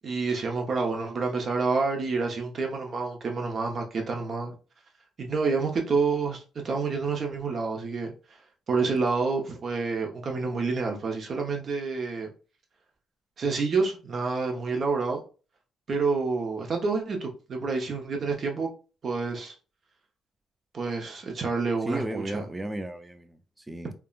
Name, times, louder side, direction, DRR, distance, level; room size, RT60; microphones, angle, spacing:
voice 1, 0.0-4.5 5.2-8.1 8.7-12.3 13.4-15.2 15.9-18.7 19.0-19.5 20.7-22.4, right 4 dB, 50° right, 0.8 m, -28 dB
voice 2, 21.9-23.9, right 1 dB, 15° right, 0.5 m, -34 dB
3.5 x 2.2 x 2.4 m
cardioid pair, 90°, 0 cm